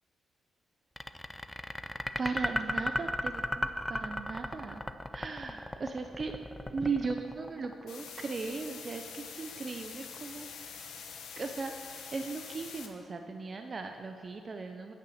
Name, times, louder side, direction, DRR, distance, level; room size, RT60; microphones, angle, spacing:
sound 1, 1.0-8.1, left 1 dB, 10° left, 0.5 m, -35 dB
voice 1, 2.2-4.8 5.1-6.3 6.7-10.5 11.4-14.9, right 4 dB, 45° right, 5 dB, 0.6 m, -37 dB
ind white noise parking garage, 7.9-12.9, left 6 dB, 80° left, 1.0 m, -45 dB
9.3 x 5.6 x 8.0 m, 2.3 s
supercardioid pair, 60°, 0 cm